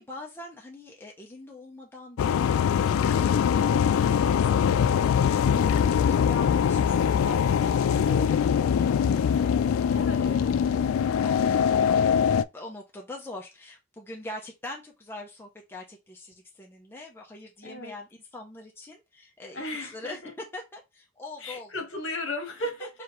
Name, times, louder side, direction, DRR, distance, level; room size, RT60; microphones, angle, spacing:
voice 1, 0.0-9.3 9.6-10.4 11.2-12.2 12.5-21.7 22.8-22.9, left 2 dB, 10° left, 0.6 m, -43 dB
sound 1, 2.2-12.4, left 7 dB, 85° left, 0.3 m, -23 dB
voice 2, 9.9-10.9 17.6-17.9 19.5-20.3 21.4-22.9, left 1 dB, 65° left, 1.5 m, -36 dB
4.8 x 2.4 x 2.9 m
head